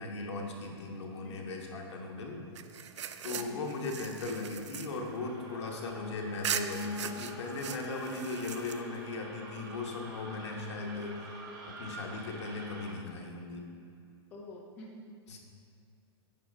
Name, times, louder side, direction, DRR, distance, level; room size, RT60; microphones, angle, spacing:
voice 1, 0.0-2.4 3.2-11.2 11.7-13.6 15.3-15.4, left 3 dB, 75° left, 1 dB, 1.3 m, -38 dB
sound 1, 0.6-11.8, left 3 dB, 50° left, 0.8 m, -52 dB
voice 2, 1.2-1.6 3.3-3.7 14.3-15.4, left 1 dB, 10° left, -3 dB, 0.5 m, -49 dB
sound 2, 2.6-6.0 6.4-9.1, right 9 dB, 80° right, 0.5 m, -40 dB
sound 3, 2.9-12.9, right 2 dB, 40° right, 1.2 m, -50 dB
9.2 x 3.8 x 5.3 m, 2.3 s
hypercardioid pair, 175°, 15 cm